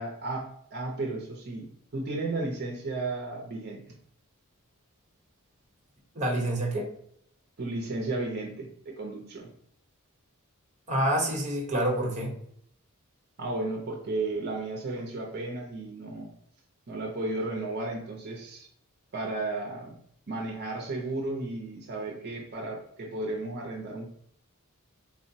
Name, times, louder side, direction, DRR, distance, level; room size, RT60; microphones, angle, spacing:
voice 1, 0.0-3.9 7.6-9.5 13.4-16.3 16.9-18.7 19.1-19.9 20.3-24.1, right 2 dB, 50° right, -1 dB, 0.5 m, -34 dB
voice 2, 6.1-6.9 10.9-12.3, right 1 dB, 35° right, -1 dB, 0.9 m, -27 dB
3.7 x 2.0 x 2.6 m, 0.66 s
head